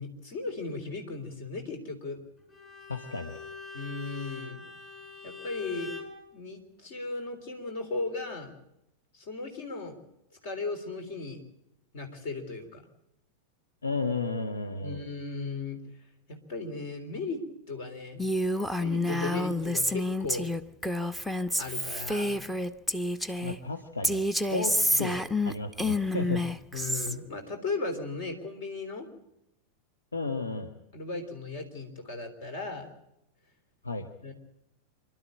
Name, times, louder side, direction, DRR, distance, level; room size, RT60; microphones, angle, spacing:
voice 1, 0.0-2.2 3.7-4.6 5.2-5.9 6.3-8.5 9.1-10.0 10.4-11.4 11.9-12.8 14.8-15.8 16.5-17.4 17.7-18.2 18.8-20.5 21.6-22.5 24.7-24.8 26.7-29.1 30.9-32.9 34.2-34.3, left 3 dB, 50° left, 6 dB, 3.6 m, -36 dB
Bowed string instrument, 2.5-6.2, left 5 dB, 30° left, 6.4 m, -43 dB
voice 2, 2.9-3.4 13.8-15.0 23.4-24.2 24.5-26.4 30.1-30.7 33.8-34.1, left 3 dB, 75° left, 6 dB, 1.2 m, -33 dB
Female speech woman speaking, 18.2-23.6 24.0-27.1, left 1 dB, 5° left, 0.8 m, -29 dB
26.5 x 12.5 x 8.8 m, 0.85 s
figure-of-eight pair, 90°, 0 cm